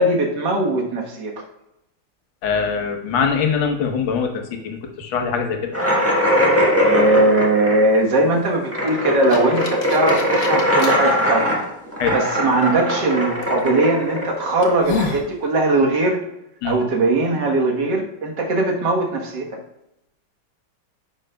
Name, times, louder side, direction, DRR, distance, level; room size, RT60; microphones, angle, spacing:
voice 1, 0.0-1.3 6.8-11.6 12.1-16.2 16.6-19.6, right 2 dB, 60° right, 0 dB, 1.9 m, -20 dB
voice 2, 2.4-5.8 12.0-12.1 16.6-16.8, left 6 dB, 80° left, 4 dB, 1.8 m, -23 dB
sound 1, 5.7-15.1, equal, 10° right, 1.3 m, -20 dB
sound 2, 8.9-10.9 11.6-11.7 13.4-13.6 14.2-14.3 14.6-15.3, left 4 dB, 60° left, 1.5 m, -29 dB
9.9 x 6.5 x 2.3 m, 0.87 s
omnidirectional pair, 2.1 m